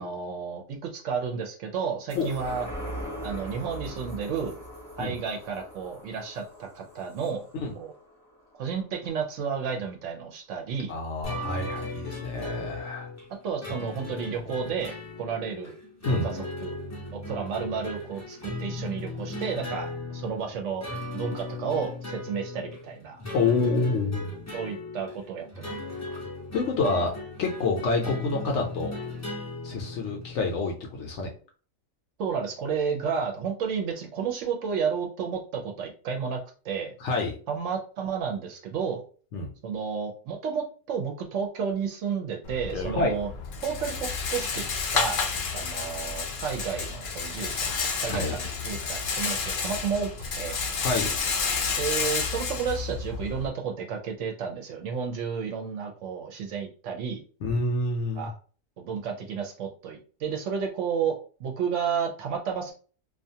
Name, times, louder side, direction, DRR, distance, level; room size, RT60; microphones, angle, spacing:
voice 1, 0.0-2.7 3.2-4.6 5.0-7.5 7.7-7.9 8.6-10.9 13.4-15.7 16.2-16.8 17.1-20.9 21.1-23.2 24.5-25.7 32.2-36.4 36.6-37.0 37.5-39.0 39.6-43.3 43.6-45.2 45.5-47.8 48.0-50.1 50.4-50.6 51.8-57.2 58.2-58.3 58.8-62.7, right 6 dB, 70° right, 2 dB, 0.8 m, -32 dB
sound 1, 2.1-8.9 9.3-9.4, equal, 15° right, 0.8 m, -41 dB
voice 2, 10.9-13.1 16.0-16.3 23.3-24.3 26.5-28.9 29.6-31.3 37.0-37.4 39.3-39.5 42.9-43.2 48.1-48.4 50.8-51.1 57.4-58.3, left 3 dB, 65° left, 1 dB, 0.8 m, -27 dB
sound 2, 11.2-30.4, left 2 dB, 25° left, 0.4 m, -37 dB
Rattle, 42.4-53.5, left 5 dB, 85° left, 0.4 m, -30 dB
2.4 x 2.3 x 2.7 m, 0.39 s
omnidirectional pair, 1.5 m